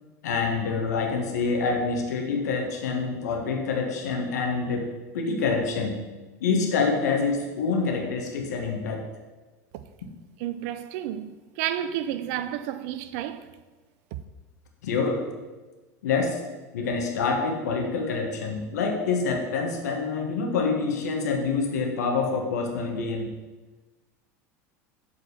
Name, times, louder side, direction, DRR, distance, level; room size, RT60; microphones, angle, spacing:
voice 1, 0.2-4.9 5.1-6.0 6.4-9.1 14.8-15.2 16.0-16.4 16.7-23.3, left 4 dB, 80° left, 1.5 m, -26 dB
voice 2, 10.4-13.5 14.1-14.2, right 11 dB, 65° right, 0.6 m, -31 dB
7.4 x 4.8 x 6.5 m
hypercardioid pair, 85°, 9 cm